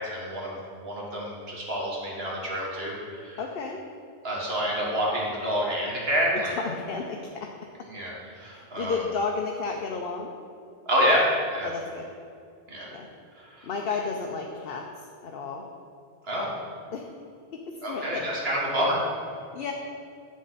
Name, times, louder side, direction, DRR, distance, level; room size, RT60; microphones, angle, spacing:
voice 1, 0.0-3.4 4.2-6.6 7.9-9.0 10.9-11.3 11.5-11.7 12.7-12.9 13.4-13.7 16.2-16.5 17.8-19.0, equal, 60° right, -4 dB, 2.1 m, -28 dB
voice 2, 3.4-3.8 6.3-7.5 8.5-10.3 11.6-12.1 12.9-13.1 13.6-15.6 16.9-17.1 17.5-18.3 19.5-19.7, left 4 dB, 60° left, 2 dB, 0.8 m, -32 dB
8.4 x 7.4 x 4.0 m, 2.4 s
omnidirectional pair, 1.2 m